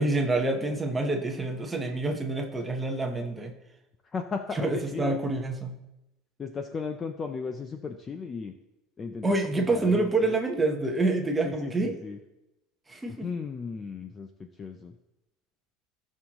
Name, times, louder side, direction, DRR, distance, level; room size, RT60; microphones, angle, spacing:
voice 1, 0.0-3.5 4.5-5.7 9.2-11.9 12.9-13.3, right 2 dB, 10° right, 2 dB, 1.0 m, -27 dB
voice 2, 4.1-5.2 6.4-8.5 9.0-9.3 9.6-10.3 11.4-12.2 13.1-14.3 14.6-14.9, left 5 dB, 15° left, 6 dB, 0.4 m, -35 dB
16.5 x 6.3 x 3.0 m, 0.92 s
cardioid pair, 180°, 0 cm